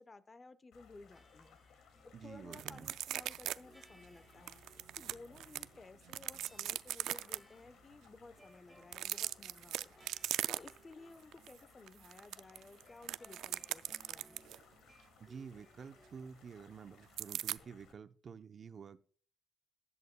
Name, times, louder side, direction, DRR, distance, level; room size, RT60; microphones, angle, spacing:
voice 1, 0.0-1.6 2.2-4.6 5.0-14.4, left 3 dB, 30° left, 0.9 m, -56 dB
sound 1, 0.7-17.9, left 5 dB, 80° left, 2.3 m, -64 dB
sound 2, 1.1-3.1 3.6-5.9 6.4-16.4, equal, ahead, 1.9 m, -67 dB
voice 2, 2.1-2.9 15.2-19.0, right 6 dB, 50° right, 0.7 m, -50 dB
sound 3, 2.5-3.6 3.8-3.9 4.5-5.6 6.1-7.4 8.8-10.9 11.3-11.5 11.9-14.6 17.2-17.6, right 12 dB, 80° right, 0.3 m, -39 dB
15.0 x 10.5 x 2.2 m
cardioid pair, 90°, 0 cm